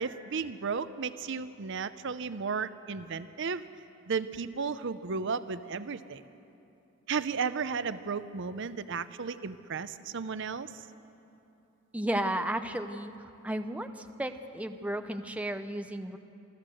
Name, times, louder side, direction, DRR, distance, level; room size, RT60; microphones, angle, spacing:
voice 1, 0.0-3.6 4.1-6.2 7.1-10.7, right 5 dB, 60° right, 13 dB, 0.6 m, -34 dB
voice 2, 11.9-13.1 13.4-13.9 14.2-16.2, right 1 dB, 5° right, 7 dB, 0.7 m, -33 dB
26.5 x 13.5 x 7.7 m, 2.8 s
head